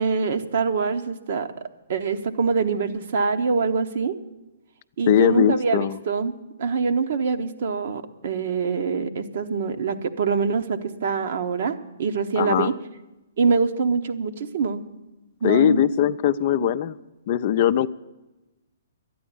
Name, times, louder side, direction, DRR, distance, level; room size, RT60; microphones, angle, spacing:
voice 1, 0.0-1.5 1.9-4.2 5.0-6.3 6.6-12.7 13.4-14.8 15.4-15.8 16.6-16.7, right 5 dB, 55° right, 8 dB, 1.0 m, -24 dB
voice 2, 5.1-6.0 12.4-12.7 15.4-17.0 17.3-17.9, left 10 dB, 45° left, 13 dB, 0.4 m, -20 dB
12.5 x 9.5 x 8.6 m, 1.0 s
figure-of-eight pair, 125°, 0 cm